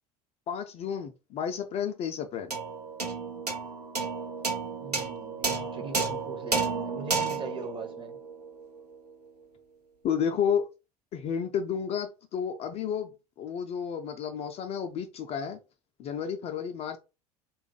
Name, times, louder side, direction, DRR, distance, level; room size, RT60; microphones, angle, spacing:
voice 1, 0.5-2.5 10.0-10.6 11.1-13.1 13.4-15.6 16.0-17.0, left 7 dB, 35° left, 0.3 m, -31 dB
sound 1, 2.5-9.1, right 4 dB, 90° right, 0.8 m, -32 dB
voice 2, 4.8-8.2, right 4 dB, 25° right, 0.8 m, -40 dB
3.1 x 2.3 x 3.8 m
figure-of-eight pair, 70°, 20 cm